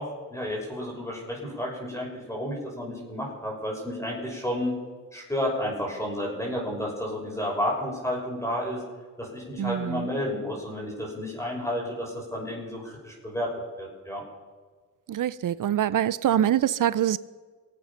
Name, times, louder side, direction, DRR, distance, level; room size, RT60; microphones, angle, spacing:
voice 1, 0.0-4.7 5.1-8.8 9.2-13.5 13.8-14.2, left 1 dB, 10° left, 6.3 m, -31 dB
voice 2, 9.6-10.1 15.1-17.2, right 11 dB, 70° right, 0.6 m, -24 dB
23.5 x 8.6 x 5.7 m
cardioid pair, 90°, 33 cm